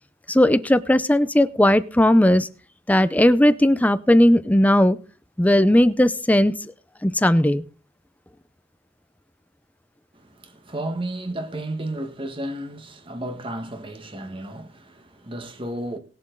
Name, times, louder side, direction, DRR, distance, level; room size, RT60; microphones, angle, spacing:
voice 1, 0.3-2.5 2.9-5.0 5.4-6.6 7.0-7.6, left 1 dB, 10° left, 0.6 m, -17 dB
voice 2, 10.1-16.0, right 1 dB, 30° right, 1.4 m, -33 dB
19.0 x 7.3 x 3.8 m
head